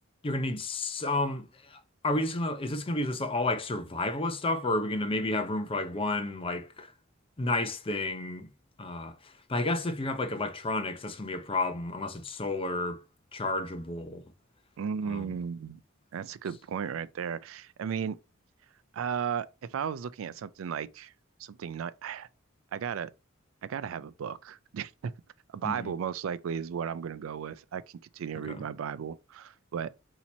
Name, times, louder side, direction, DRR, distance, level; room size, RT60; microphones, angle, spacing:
voice 1, 0.2-6.9 7.4-8.5 8.8-13.0 13.3-14.2 15.1-15.3 25.6-25.9 28.4-28.6, left 2 dB, 30° left, 0.5 m, -31 dB
voice 2, 14.8-15.8 16.1-18.2 18.9-21.1 21.4-22.3 22.7-23.1 23.6-25.1 25.5-29.9, right 7 dB, 90° right, 0.4 m, -35 dB
4.3 x 2.9 x 4.1 m
head